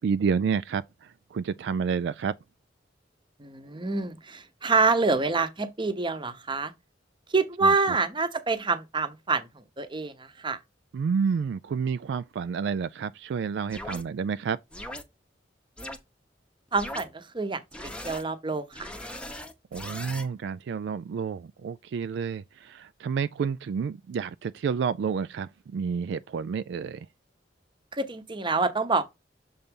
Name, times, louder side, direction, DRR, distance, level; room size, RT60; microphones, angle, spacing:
voice 1, 0.0-2.3 7.6-7.7 10.9-14.6 19.7-27.1, right 6 dB, 70° right, 0.3 m, -29 dB
voice 2, 3.4-6.7 7.3-10.6 16.7-18.9 27.9-29.0, right 4 dB, 25° right, 0.9 m, -27 dB
sound 1, 13.7-14.0 14.7-15.0 15.8-16.0 16.7-17.0 17.7-18.2 18.7-20.3, left 1 dB, 5° left, 0.8 m, -39 dB
7.0 x 3.9 x 3.7 m
head